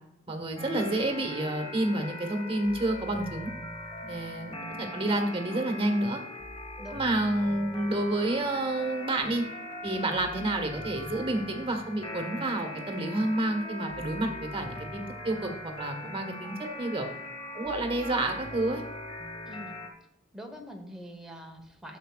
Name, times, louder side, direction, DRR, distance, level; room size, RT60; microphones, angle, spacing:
voice 1, 0.3-3.5 4.1-6.2 6.9-9.4 9.8-17.1 17.5-18.8, right 1 dB, 30° right, 3 dB, 1.5 m, -29 dB
sound 1, 0.6-19.9, left 1 dB, 30° left, 1.8 m, -40 dB
voice 2, 5.3-5.6 6.8-7.2 19.4-19.8 20.3-22.0, equal, 5° right, 2 dB, 1.2 m, -44 dB
11.0 x 7.3 x 2.4 m, 0.78 s
head